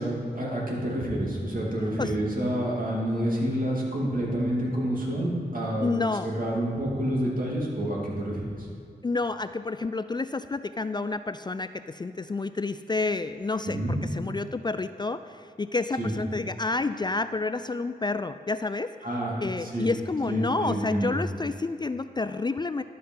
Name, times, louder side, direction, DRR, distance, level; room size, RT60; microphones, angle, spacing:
voice 1, 0.0-5.9 6.2-8.4 13.6-14.0 16.0-16.1 19.0-19.3 19.6-19.9 20.3-21.1, right 1 dB, 55° right, -3 dB, 2.7 m, -28 dB
voice 2, 5.8-6.3 9.0-18.9 19.4-22.8, left 3 dB, 25° left, 11 dB, 0.3 m, -29 dB
12.0 x 5.7 x 5.6 m, 2.4 s
cardioid pair, 40°, 17 cm